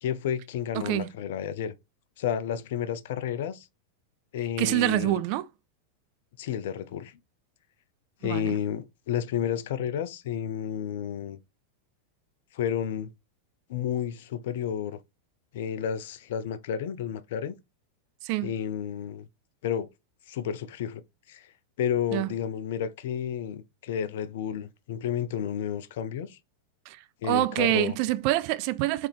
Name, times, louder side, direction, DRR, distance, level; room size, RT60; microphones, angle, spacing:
voice 1, 0.0-1.7 2.2-3.7 4.3-5.2 6.4-7.1 8.2-11.4 12.5-13.1 13.7-15.0 15.5-17.5 18.4-19.3 19.6-19.9 20.3-21.0 21.3-21.5 21.8-26.4 27.2-28.0, left 9 dB, 55° left, 0.3 m, -31 dB
voice 2, 0.7-1.1 4.6-5.5 8.2-8.6 18.2-18.5 22.1-22.3 26.9-29.1, right 17 dB, 45° right, 0.3 m, -26 dB
3.3 x 3.2 x 3.5 m
figure-of-eight pair, 90°, 0 cm